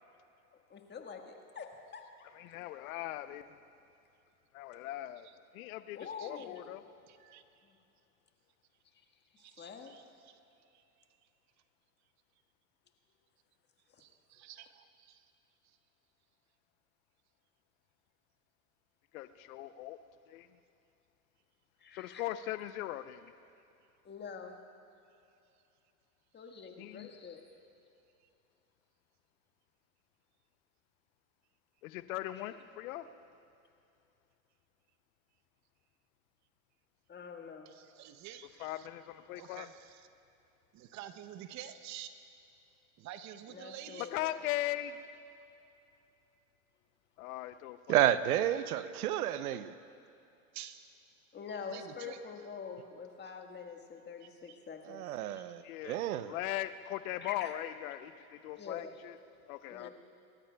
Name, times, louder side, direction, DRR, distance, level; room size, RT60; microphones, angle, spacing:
voice 1, 0.7-2.3 5.9-6.7 7.6-7.7 8.9-9.0 9.3-9.9 13.9-14.0 21.8-22.2 24.0-24.6 26.3-27.4 32.3-32.5 37.1-37.7 43.5-44.4 51.3-55.5 57.2-57.5 58.6-58.9 59.7-59.9, left 6 dB, 25° left, 3 dB, 1.5 m, -46 dB
voice 2, 2.3-3.5 4.5-5.3 5.5-6.8 19.1-20.0 20.3-20.5 21.9-23.3 26.8-27.1 31.8-33.1 38.6-39.7 44.1-45.0 47.2-48.1 55.6-59.2 59.5-59.9, left 14 dB, 70° left, 12 dB, 0.7 m, -39 dB
voice 3, 7.1-7.4 9.4-10.4 10.7-10.8 14.0-15.3 15.6-15.8 37.7-38.9 39.3-40.1 40.7-42.3 43.0-44.1 50.5-50.9 51.7-52.2 54.2-54.3, right 11 dB, 40° right, 11 dB, 0.8 m, -49 dB
voice 4, 47.9-49.7 54.9-56.4, right 12 dB, 80° right, 14 dB, 0.7 m, -31 dB
28.5 x 13.0 x 2.3 m, 2.7 s
hypercardioid pair, 100°, 43 cm